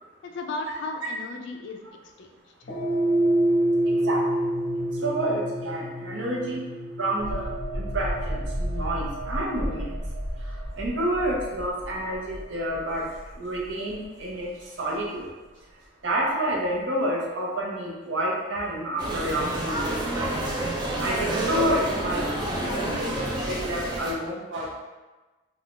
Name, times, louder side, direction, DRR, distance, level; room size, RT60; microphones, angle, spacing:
voice 1, 0.2-2.3, left 2 dB, 60° left, 3 dB, 0.4 m, -35 dB
sound 1, 2.6-11.1, right 1 dB, 45° left, 0.8 m, -28 dB
voice 2, 3.9-4.2 5.0-6.7 7.0-9.9 10.4-13.1 13.4-15.3 16.0-20.4 21.0-23.1 23.4-24.8, right 1 dB, 70° right, -3 dB, 0.7 m, -29 dB
sound 2, 7.2-14.6 15.0-15.2, right 1 dB, 55° right, 1.3 m, -34 dB
sound 3, 19.0-24.1, right 1 dB, 20° right, 0.4 m, -28 dB
2.4 x 2.3 x 3.6 m, 1.2 s
head